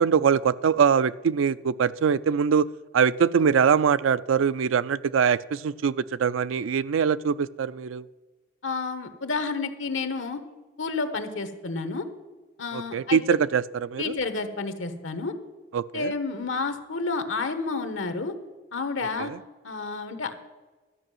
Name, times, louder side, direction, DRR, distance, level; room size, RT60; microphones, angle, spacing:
voice 1, 0.0-2.7 2.9-8.0 12.7-14.1 15.7-16.1 19.2-19.4, right 7 dB, 85° right, 16 dB, 0.4 m, -23 dB
voice 2, 8.6-10.4 10.8-12.0 12.6-13.2 14.0-15.3 15.9-18.3 18.7-19.3 19.6-20.3, left 4 dB, 85° left, 9 dB, 1.2 m, -30 dB
12.5 x 5.4 x 9.1 m, 1.3 s
head